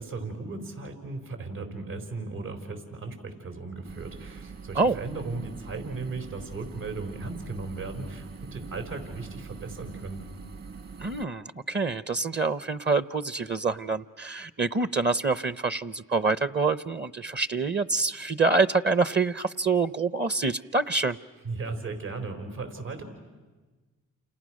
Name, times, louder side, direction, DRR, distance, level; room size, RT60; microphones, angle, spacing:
voice 1, 0.0-10.2 21.4-23.0, right 3 dB, 75° right, 5 dB, 5.0 m, -36 dB
sound 1, 3.8-11.2, right 5 dB, 45° right, 1.5 m, -43 dB
voice 2, 11.0-21.2, right 4 dB, 30° right, 16 dB, 0.8 m, -26 dB
29.5 x 28.0 x 6.4 m, 1.3 s
supercardioid pair, 50°, 35 cm